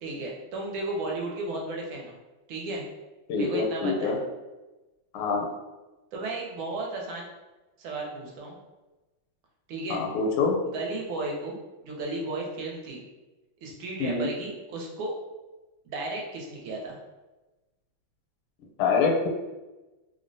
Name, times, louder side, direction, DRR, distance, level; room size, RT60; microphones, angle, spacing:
voice 1, 0.0-2.2 2.5-2.8 3.4-4.2 6.1-7.3 7.8-8.6 9.7-10.0 10.7-11.6 11.8-13.0 13.6-15.1 15.8-17.0, right 2 dB, 75° right, -1 dB, 1.4 m, -34 dB
voice 2, 3.3-4.2 5.1-5.5 9.9-10.6 14.0-14.3 18.8-19.3, left 4 dB, 85° left, 0 dB, 1.5 m, -25 dB
3.4 x 2.0 x 2.5 m, 1.1 s
omnidirectional pair, 2.4 m